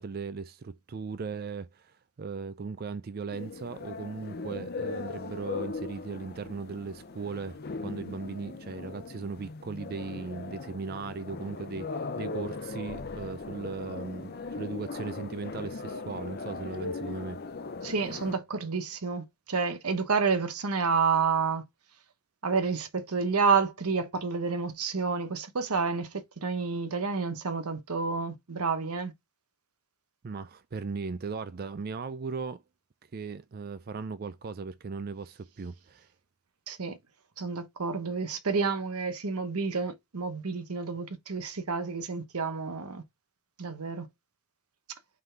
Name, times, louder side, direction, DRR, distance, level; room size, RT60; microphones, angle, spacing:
voice 1, 0.0-7.6 7.8-17.4 30.2-32.6 33.1-36.1, right 4 dB, 45° right, 0.4 m, -38 dB
sound 1, 3.3-18.3, left 4 dB, 45° left, 0.7 m, -39 dB
voice 2, 17.8-21.6 22.4-29.1 36.7-37.0 37.4-43.0 43.6-44.1, right 5 dB, 90° right, 1.0 m, -29 dB
5.6 x 3.8 x 4.5 m
head